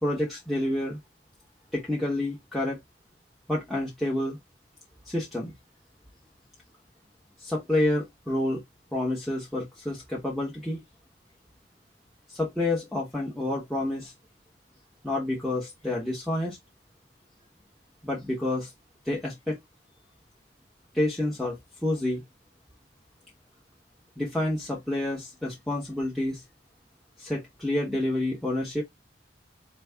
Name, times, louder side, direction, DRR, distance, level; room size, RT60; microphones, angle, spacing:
voice 1, 0.0-1.0 1.7-2.8 3.5-4.4 5.1-5.5 7.4-8.6 8.9-10.8 12.3-14.1 15.0-16.6 18.0-18.7 19.0-19.6 20.9-21.6 21.8-22.2 24.2-26.4 27.2-28.8, left 1 dB, ahead, 1.1 m, -28 dB
4.2 x 3.0 x 3.4 m
head